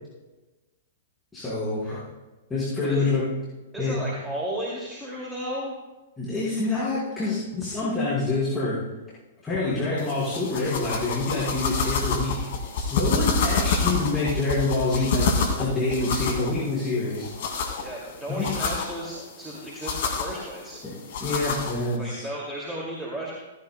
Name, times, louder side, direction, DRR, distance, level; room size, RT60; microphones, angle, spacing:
voice 1, 1.3-2.0 2.5-3.2 3.8-4.0 6.2-8.8 9.4-12.3 12.8-15.3 15.6-17.3 18.3-18.5 20.8-20.9 21.2-22.2, left 2 dB, 10° left, -11 dB, 4.5 m, -26 dB
voice 2, 3.7-5.8 17.8-20.8 22.0-23.3, right 1 dB, 10° right, -4 dB, 2.3 m, -34 dB
sound 1, 10.0-22.0, left 4 dB, 55° left, 2.1 m, -28 dB
16.0 x 15.5 x 2.2 m, 1.1 s
figure-of-eight pair, 105°, 0 cm